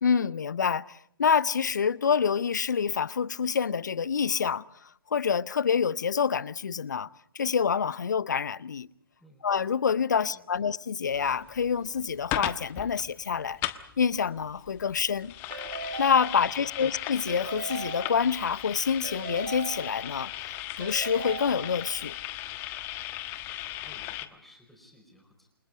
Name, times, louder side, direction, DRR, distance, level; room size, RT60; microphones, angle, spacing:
voice 1, 0.0-4.6 5.1-7.1 7.3-8.9 9.4-13.6 14.0-15.3 16.0-22.1, left 6 dB, 50° left, 0.9 m, -27 dB
voice 2, 9.2-9.6 10.3-10.7 16.4-17.0 23.4-25.5, left 1 dB, ahead, 5.0 m, -57 dB
sound 1, 11.1-24.3, left 15 dB, 20° left, 1.2 m, -37 dB
Keyboard (musical) / Ringtone, 15.5-16.8 17.3-18.6 19.0-20.4 20.8-22.1, right 4 dB, 65° right, 2.7 m, -39 dB
29.0 x 25.5 x 4.9 m
figure-of-eight pair, 135°, 12 cm